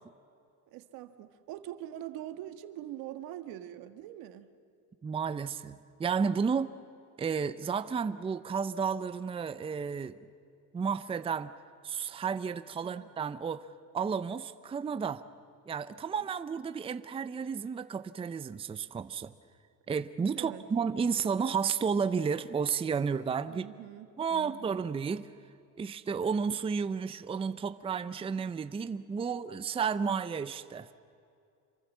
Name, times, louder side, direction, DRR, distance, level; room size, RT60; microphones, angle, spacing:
voice 1, 0.7-4.5 12.8-13.1 20.3-20.7 23.5-24.8, right 12 dB, 80° right, 9 dB, 1.7 m, -43 dB
voice 2, 5.0-6.7 7.2-10.1 10.7-11.5 11.8-13.7 13.9-15.2 15.7-19.3 19.9-23.6 24.2-25.3 25.8-30.9, right 6 dB, 15° right, 12 dB, 0.6 m, -32 dB
27.5 x 23.5 x 7.4 m, 2.5 s
cardioid pair, 140°, 35 cm